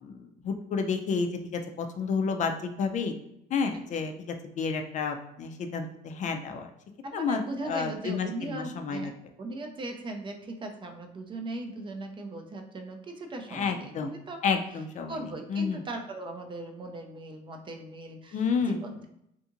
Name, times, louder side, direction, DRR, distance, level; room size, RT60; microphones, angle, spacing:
voice 1, 0.0-3.1 3.5-6.7 7.1-9.1 13.5-14.1 14.4-15.8 18.3-18.8, left 5 dB, 45° left, 5 dB, 0.4 m, -30 dB
voice 2, 7.0-9.1 9.4-14.6 15.1-19.1, right 2 dB, 30° right, 4 dB, 0.4 m, -39 dB
2.7 x 2.5 x 2.5 m, 0.80 s
cardioid pair, 110°, 17 cm